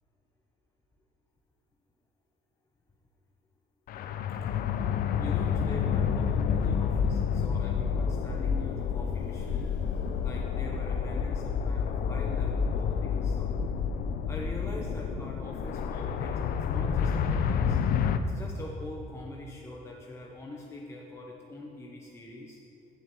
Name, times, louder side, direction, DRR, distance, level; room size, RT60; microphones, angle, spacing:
sound 1, 3.9-18.2, left 7 dB, 60° left, 0.5 m, -29 dB
voice 1, 5.2-13.6 14.3-17.8 18.3-22.6, left 1 dB, 15° left, -1 dB, 0.8 m, -43 dB
15.0 x 7.0 x 3.0 m, 2.7 s
cardioid pair, 110°, 17 cm